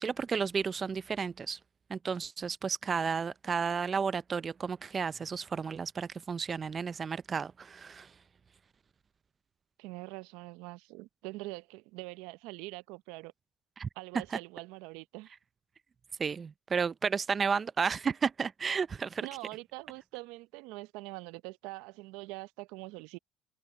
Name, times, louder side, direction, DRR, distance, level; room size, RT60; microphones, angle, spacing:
voice 1, 0.0-1.6 1.9-8.1 13.8-13.9 16.2-19.2, right 6 dB, 30° right, 0.5 m, -32 dB
voice 2, 9.8-13.3 14.0-15.3 19.2-23.2, right 22 dB, 75° right, 0.6 m, -44 dB
supercardioid pair, 85°, 0 cm